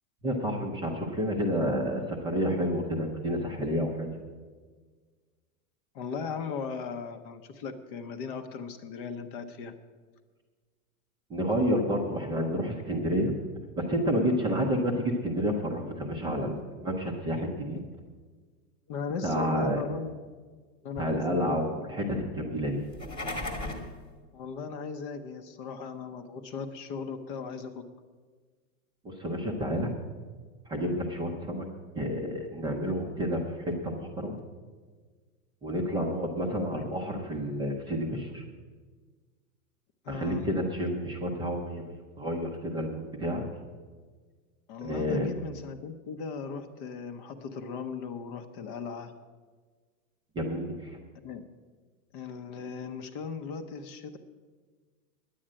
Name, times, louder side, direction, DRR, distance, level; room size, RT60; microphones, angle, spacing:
voice 1, 0.2-4.2 11.3-13.3 13.8-17.8 19.2-19.8 21.0-22.8 29.0-29.9 30.7-31.6 32.0-34.4 35.6-38.4 40.1-43.4 44.8-45.3 50.4-51.0, equal, 10° right, 0 dB, 0.6 m, -30 dB
voice 2, 5.9-9.7 17.4-17.7 18.9-20.1 20.8-21.8 24.3-27.8 36.6-36.9 40.0-40.5 44.7-49.1 51.2-51.4 52.1-54.2, left 5 dB, 35° left, 9 dB, 0.7 m, -37 dB
sound 1, 22.8-23.9, left 2 dB, 10° left, 1.3 m, -35 dB
10.0 x 8.6 x 7.5 m, 1.5 s
supercardioid pair, 155°, 46 cm